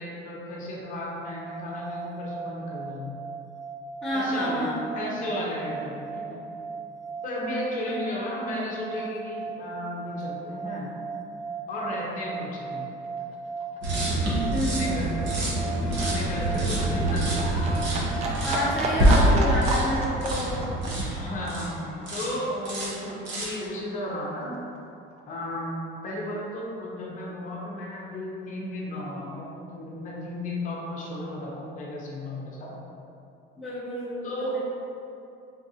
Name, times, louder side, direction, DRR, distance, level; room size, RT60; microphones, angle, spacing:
voice 1, 0.0-3.1 4.1-4.7 4.9-6.4 7.2-10.9 11.7-12.8 14.7-15.3 16.0-17.9 19.2-19.4 21.2-24.6 25.3-32.7 34.2-34.6, left 1 dB, 40° left, -4 dB, 0.7 m, -34 dB
sound 1, 0.8-18.6, right 5 dB, 90° left, 0.6 m, -37 dB
voice 2, 4.0-5.1 7.9-8.0 14.5-14.9 18.4-20.6 33.6-34.6, equal, ahead, -11 dB, 0.8 m, -30 dB
Livestock farm animals working animals, 12.5-23.4 23.8-24.8 25.1-25.2, right 2 dB, 30° right, 0.4 m, -33 dB
sound 2, 13.8-21.7 22.1-22.4 22.6-23.6, right 1 dB, 65° right, 0.9 m, -26 dB
4.0 x 2.5 x 2.7 m, 2.6 s
cardioid pair, 150°, 21 cm